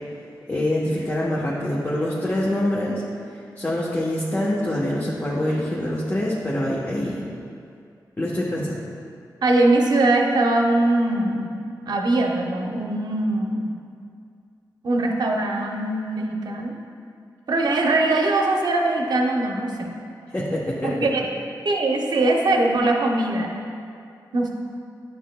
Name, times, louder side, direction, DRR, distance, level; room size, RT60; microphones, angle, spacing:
voice 1, 0.5-3.0 3.6-7.2 8.2-8.8 20.3-20.9, left 1 dB, 25° left, -6 dB, 0.9 m, -25 dB
voice 2, 9.4-11.5 11.9-13.7 14.8-16.8 17.5-20.0 20.8-21.2 21.6-23.5 24.3-24.5, right 2 dB, 65° right, 1 dB, 0.8 m, -21 dB
10.5 x 6.0 x 2.2 m, 2.4 s
wide cardioid pair, 90°, 8 cm